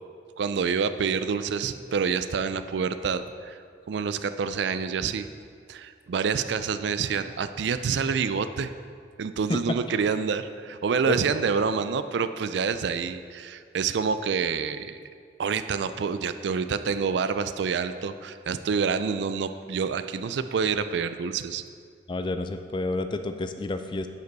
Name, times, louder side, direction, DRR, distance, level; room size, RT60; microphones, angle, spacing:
voice 1, 0.4-3.6 3.9-5.3 5.7-8.7 9.2-15.0 15.4-21.6, right 5 dB, 70° right, 11 dB, 0.4 m, -27 dB
voice 2, 22.1-24.1, left 2 dB, 25° left, 8 dB, 0.3 m, -29 dB
10.5 x 5.2 x 4.0 m, 2.2 s
head